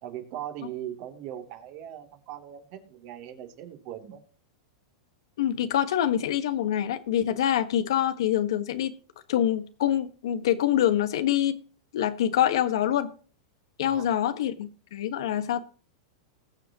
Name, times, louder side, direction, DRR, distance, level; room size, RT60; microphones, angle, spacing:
voice 1, 0.0-4.2 13.8-14.1, right 11 dB, 50° right, 4 dB, 3.0 m, -39 dB
voice 2, 5.4-8.9 9.3-11.5 11.9-13.1 13.8-15.6, left 11 dB, 75° left, 10 dB, 1.5 m, -25 dB
20.5 x 7.3 x 3.0 m, 0.40 s
supercardioid pair, 135°, 3 cm